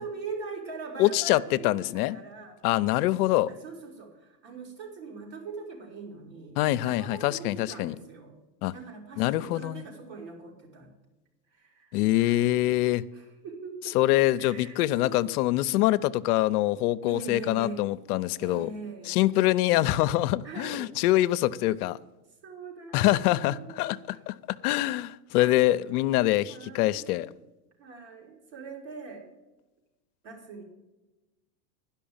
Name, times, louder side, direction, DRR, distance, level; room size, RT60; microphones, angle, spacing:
voice 1, 0.0-2.6 2.9-8.4 8.7-10.9 11.5-12.5 13.1-14.0 14.4-15.2 17.1-17.9 18.4-19.2 20.4-20.9 22.4-24.2 25.3-25.7 26.5-27.2 27.8-29.3 30.2-30.6, right 4 dB, 55° right, 4.2 m, -42 dB
voice 2, 1.0-2.2 2.6-3.5 6.6-8.0 8.6-8.7 9.2-9.8 11.9-13.0 13.9-18.7 19.1-22.0 22.9-27.3, left 16 dB, 65° left, 0.6 m, -25 dB
11.5 x 5.7 x 8.7 m
supercardioid pair, 125°, 49 cm